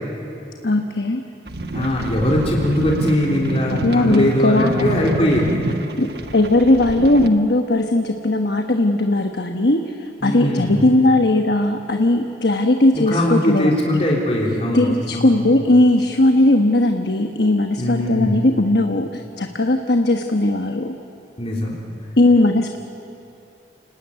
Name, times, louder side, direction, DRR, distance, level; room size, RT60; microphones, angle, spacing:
voice 1, 0.6-1.2 3.7-4.9 6.0-14.0 14.7-21.0 22.2-22.8, left 2 dB, 65° left, 5 dB, 1.2 m, -18 dB
sound 1, 1.5-7.3, right 1 dB, 60° right, 1.3 m, -26 dB
voice 2, 1.7-5.6 10.2-10.8 12.9-15.4 17.8-18.5 21.4-21.7, equal, 35° left, -3 dB, 3.2 m, -21 dB
29.5 x 18.5 x 9.6 m, 2.8 s
head